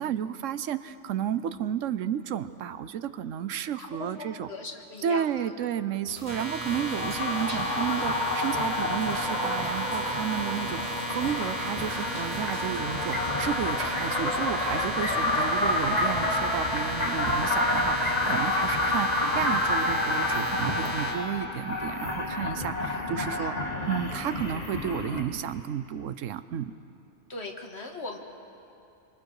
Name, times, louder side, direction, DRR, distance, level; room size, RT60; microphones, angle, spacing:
voice 1, 0.0-4.5 5.0-23.5 23.9-26.7, right 9 dB, 80° right, 12 dB, 1.1 m, -32 dB
voice 2, 3.8-5.4 22.8-23.6 27.3-28.2, left 2 dB, 55° left, 2 dB, 2.0 m, -40 dB
sound 1, 6.0-15.2, equal, 10° left, 3.1 m, -47 dB
sound 2, 6.3-21.1, right 1 dB, 35° right, 4.4 m, -35 dB
sound 3, 6.6-25.2, left 2 dB, 35° left, 1.9 m, -29 dB
27.5 x 25.0 x 4.8 m, 2.7 s
omnidirectional pair, 1.3 m